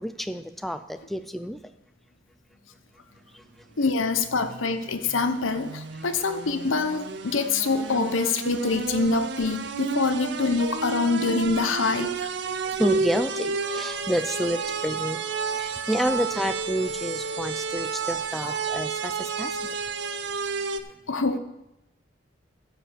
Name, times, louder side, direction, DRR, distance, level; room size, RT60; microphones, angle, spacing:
voice 1, 0.0-1.6 3.3-3.4 5.9-6.0 12.4-15.2 15.5-19.7, equal, ahead, 10 dB, 0.4 m, -29 dB
voice 2, 3.8-12.3 18.4-18.5 21.1-21.4, left 3 dB, 85° left, 9 dB, 0.9 m, -25 dB
sound 1, 4.1-20.8, right 4 dB, 60° right, 0.6 m, -31 dB
Wind instrument woodwind instrument, 13.6-20.1, left 2 dB, 45° left, 1.9 m, -45 dB
13.0 x 5.1 x 7.4 m, 0.89 s
head